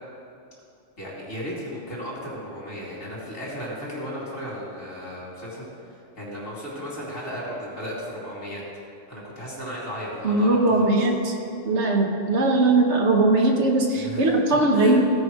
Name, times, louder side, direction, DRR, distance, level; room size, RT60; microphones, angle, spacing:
voice 1, 1.0-8.6 9.1-10.9 14.0-15.0, equal, 80° left, -5 dB, 3.1 m, -35 dB
voice 2, 10.2-11.3 11.6-15.0, right 2 dB, 60° right, 1 dB, 1.3 m, -20 dB
16.0 x 5.3 x 4.7 m, 2.5 s
omnidirectional pair, 1.3 m